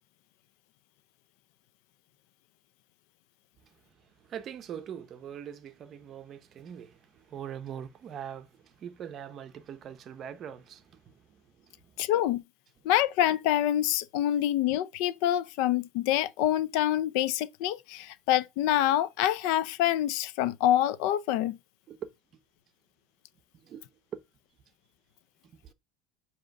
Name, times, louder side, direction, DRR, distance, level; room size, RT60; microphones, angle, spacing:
voice 1, 4.3-11.1 21.9-22.1 23.6-23.8 24.1-24.2 25.6-25.7, right 9 dB, 30° right, 0.6 m, -42 dB
voice 2, 12.0-12.4 12.8-21.6, left 12 dB, 65° left, 0.5 m, -26 dB
7.8 x 2.9 x 5.1 m
cardioid pair, 170°, 0 cm